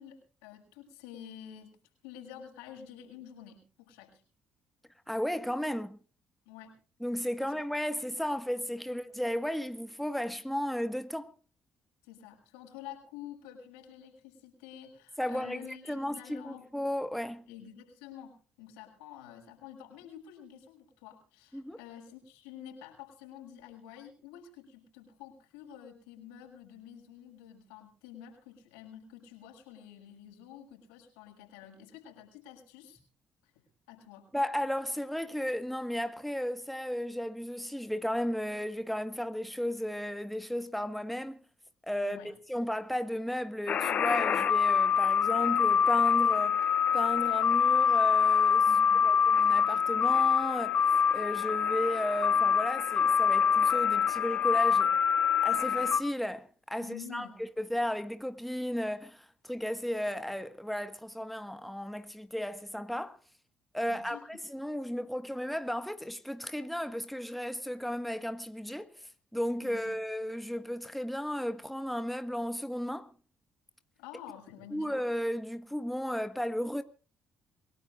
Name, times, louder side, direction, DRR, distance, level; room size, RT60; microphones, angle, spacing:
voice 1, 0.0-1.7 2.0-4.2 6.4-6.8 7.4-7.5 8.9-9.0 12.0-16.6 17.5-33.0 33.4-33.5 33.9-34.3 42.0-42.3 48.6-49.1 56.8-57.4 63.8-64.2 69.6-70.0 74.0-74.9, left 9 dB, 90° left, 6.4 m, -49 dB
voice 2, 5.1-6.0 7.0-11.3 15.2-17.5 21.5-21.8 34.3-41.4 41.9-46.6 46.9-48.7 49.0-55.0 55.4-57.3 57.6-63.2 63.7-68.9 69.3-73.1 74.7-76.8, equal, ahead, 1.6 m, -34 dB
sound 1, 43.7-56.0, left 7 dB, 55° left, 2.0 m, -25 dB
27.5 x 18.0 x 2.5 m
supercardioid pair, 60°, 3 cm